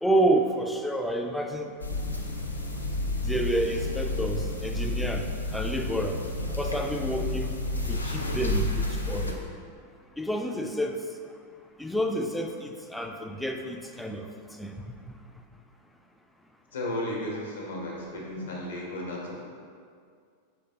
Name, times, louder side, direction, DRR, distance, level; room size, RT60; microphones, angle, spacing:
voice 1, 0.0-1.7 3.2-5.2 5.5-6.2 6.6-7.5 7.9-9.4 10.2-11.0 11.8-14.2 14.6-14.8, right 1 dB, 5° left, 3 dB, 0.3 m, -29 dB
sound 1, 1.8-9.3, left 2 dB, 85° left, 0.4 m, -30 dB
voice 2, 16.7-19.5, left 1 dB, 65° left, -3 dB, 0.9 m, -34 dB
5.4 x 3.2 x 2.8 m, 2.2 s
figure-of-eight pair, 90°, 0 cm